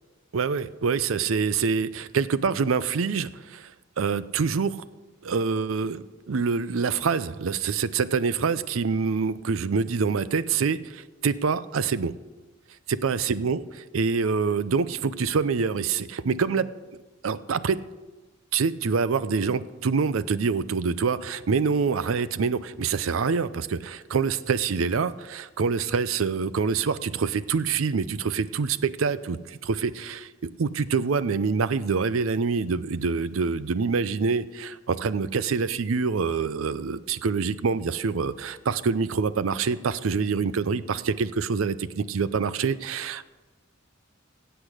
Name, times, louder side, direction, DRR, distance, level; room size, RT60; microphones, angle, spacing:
voice 1, 0.3-3.7 4.0-4.8 5.2-12.1 12.9-13.6 13.9-16.7 17.2-17.8 18.5-43.3, right 5 dB, 90° right, 16 dB, 0.5 m, -26 dB
16.0 x 8.0 x 5.0 m, 1.2 s
head